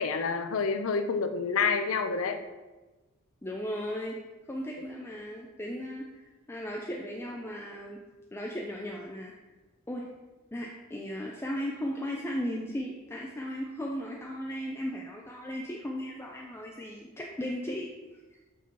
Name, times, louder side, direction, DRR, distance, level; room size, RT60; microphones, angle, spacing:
voice 1, 0.0-2.4, left 5 dB, 65° left, 8 dB, 0.5 m, -28 dB
voice 2, 3.4-4.2 4.5-8.0 8.3-9.3 9.9-10.0 10.5-17.9, equal, 10° left, -1 dB, 0.4 m, -36 dB
8.0 x 2.8 x 4.5 m, 1.2 s
head